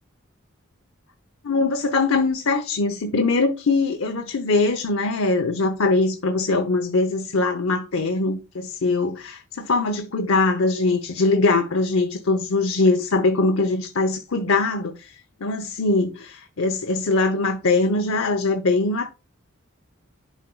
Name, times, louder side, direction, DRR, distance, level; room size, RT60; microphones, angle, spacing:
voice 1, 1.4-19.1, left 3 dB, 85° left, 0.8 m, -22 dB
11.5 x 4.5 x 2.3 m
head